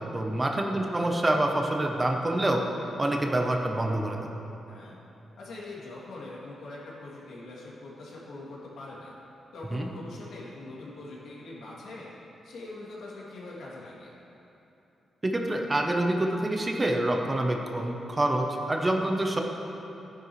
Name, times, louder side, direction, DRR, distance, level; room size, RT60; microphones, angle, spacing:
voice 1, 0.0-2.6 3.0-4.2 9.7-9.9 15.2-19.4, right 1 dB, 20° right, 2 dB, 0.8 m, -26 dB
voice 2, 0.7-1.0 4.7-5.0 5.4-9.1 9.5-12.1 12.4-14.1, left 2 dB, 80° left, -6 dB, 2.8 m, -43 dB
15.0 x 10.0 x 3.2 m, 3.0 s
cardioid pair, 130°, 0 cm